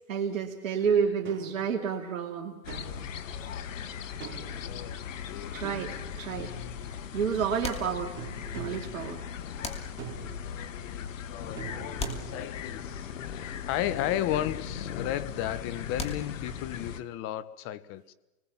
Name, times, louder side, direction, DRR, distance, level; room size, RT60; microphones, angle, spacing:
voice 1, 0.1-2.6 5.5-6.5 7.1-8.1 8.6-9.2, right 7 dB, 75° right, 2.7 m, -30 dB
sound 1, 1.2-1.7 2.7-3.2 4.2-4.6 5.6-6.5 8.2-9.0 10.0-10.5 11.6-12.5, right 9 dB, 30° right, 4.9 m, -43 dB
sound 2, 2.6-17.0, left 8 dB, 65° left, 1.8 m, -38 dB
voice 2, 4.6-5.0 5.3-5.6 6.3-7.0 10.4-18.1, left 12 dB, 30° left, 1.2 m, -35 dB
sound 3, 7.6-8.6 9.6-10.4 12.0-13.0 15.9-16.8, left 2 dB, 15° left, 2.9 m, -40 dB
29.0 x 20.5 x 7.3 m
hypercardioid pair, 130°, 41 cm